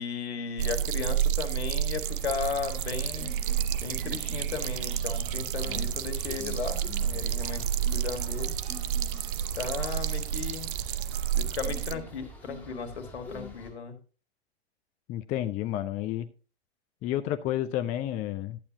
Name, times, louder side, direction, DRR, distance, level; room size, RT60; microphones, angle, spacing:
voice 1, 0.0-3.3 3.8-8.5 9.6-10.7 11.3-14.0, left 6 dB, 75° left, 8 dB, 1.8 m, -36 dB
sound 1, 0.6-12.0, right 10 dB, 50° right, 0.6 m, -30 dB
sound 2, 2.0-13.7, equal, 5° left, 2.3 m, -46 dB
voice 2, 15.1-16.3 17.0-18.6, left 12 dB, 25° left, 10 dB, 0.4 m, -30 dB
12.0 x 8.4 x 2.8 m, 0.36 s
hypercardioid pair, 105°, 33 cm